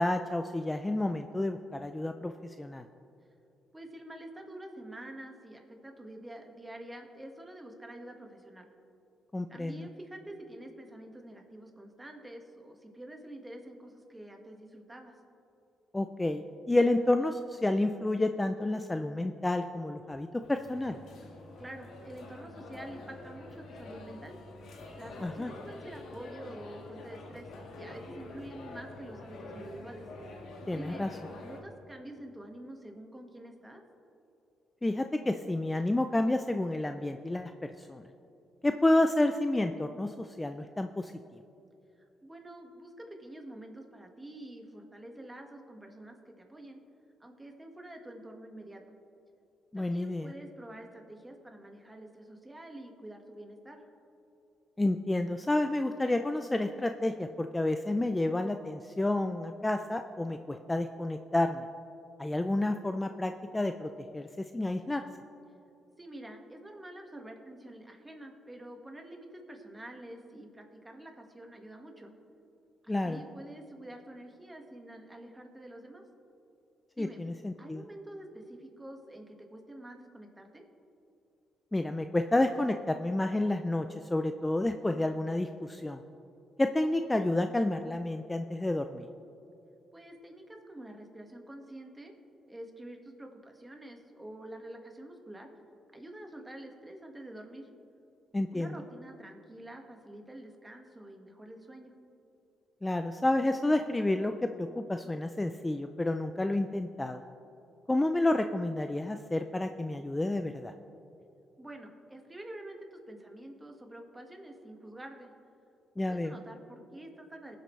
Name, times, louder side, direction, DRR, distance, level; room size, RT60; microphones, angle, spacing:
voice 1, 0.0-2.8 9.3-9.9 15.9-21.0 25.2-25.5 30.7-31.1 34.8-38.0 38.6-41.4 49.7-50.3 54.8-61.6 62.2-64.3 64.5-65.0 72.9-73.2 77.0-77.8 81.7-86.0 86.6-89.1 98.3-98.7 102.8-107.2 107.9-110.7 116.0-116.3, left 2 dB, 15° left, 7 dB, 0.4 m, -30 dB
voice 2, 3.7-8.7 9.5-15.1 21.6-24.4 24.9-30.0 30.7-31.0 31.4-33.8 42.0-46.8 47.2-48.8 49.7-53.8 66.0-72.1 72.8-76.0 76.9-77.2 77.6-80.6 89.9-92.1 92.5-95.5 95.9-97.7 98.5-101.9 111.6-115.3 116.1-117.6, right 1 dB, 15° right, 2 dB, 1.7 m, -47 dB
sound 1, 20.4-31.6, left 2 dB, 75° left, 1.7 m, -46 dB
20.0 x 7.8 x 3.2 m, 2.8 s
cardioid pair, 90°, 0 cm